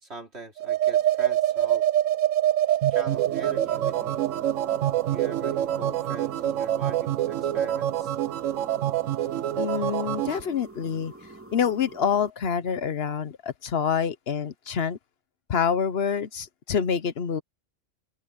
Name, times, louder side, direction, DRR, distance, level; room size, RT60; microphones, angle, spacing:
voice 1, 0.0-1.8 2.9-4.2 5.1-8.2, right 2 dB, 55° right, 4.0 m, -42 dB
sound 1, 0.6-10.4, right 12 dB, 75° right, 1.0 m, -25 dB
sound 2, 3.1-12.3, right 2 dB, 10° right, 2.2 m, -46 dB
voice 2, 9.6-11.1 11.5-15.0 15.5-17.4, left 7 dB, 55° left, 1.0 m, -26 dB
open air
omnidirectional pair, 1.3 m